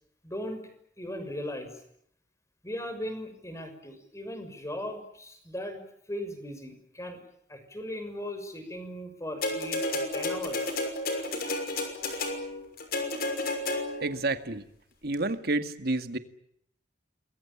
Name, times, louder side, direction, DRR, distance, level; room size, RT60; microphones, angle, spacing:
voice 1, 0.2-0.6 1.0-1.7 2.6-5.8 6.1-7.2 7.5-10.7, left 1 dB, 15° left, 8 dB, 6.3 m, -38 dB
sound 1, 9.4-14.2 15.1-15.2, left 2 dB, 60° left, 6.1 m, -31 dB
voice 2, 14.0-14.6 15.0-16.2, right 2 dB, 60° right, 9 dB, 2.0 m, -29 dB
28.0 x 22.0 x 8.8 m, 0.70 s
head